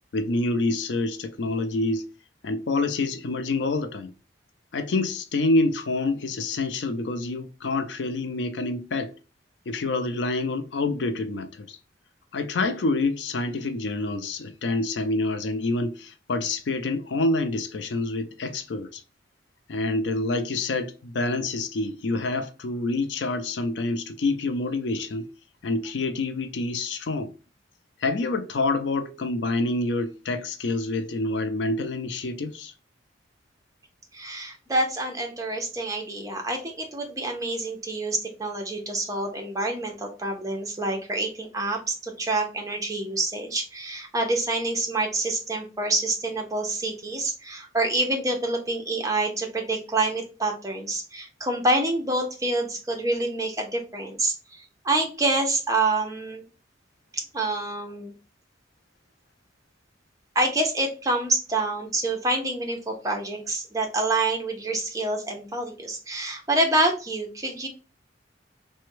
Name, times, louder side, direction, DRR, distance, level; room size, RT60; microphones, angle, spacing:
voice 1, 0.1-2.1 2.4-4.1 4.7-9.1 9.7-11.8 12.3-19.0 19.7-25.3 25.6-27.3 28.0-32.7, left 2 dB, 65° left, 0.4 m, -27 dB
voice 2, 34.1-56.4 57.1-58.1 60.3-67.7, right 2 dB, 20° right, 0.7 m, -27 dB
3.3 x 2.2 x 3.0 m
head